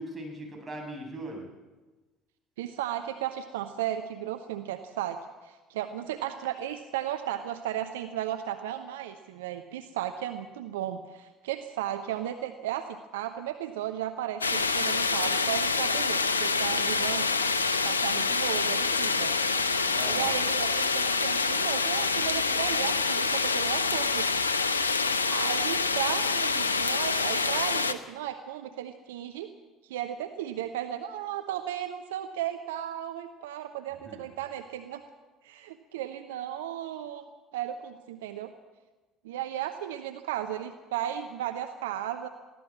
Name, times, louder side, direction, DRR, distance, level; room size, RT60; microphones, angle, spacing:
voice 1, 0.0-1.5 19.9-20.3 34.0-34.3, right 1 dB, 20° right, 1 dB, 7.6 m, -39 dB
voice 2, 2.6-5.2 5.4-17.3 17.7-19.3 20.0-24.4 25.3-29.5 29.8-35.0 35.4-37.2 37.5-38.5 39.2-42.3, right 11 dB, 70° right, 8 dB, 0.9 m, -35 dB
sound 1, 14.4-27.9, left 4 dB, 85° left, 0.8 m, -26 dB
23.0 x 16.0 x 7.5 m, 1.2 s
figure-of-eight pair, 60°, 0 cm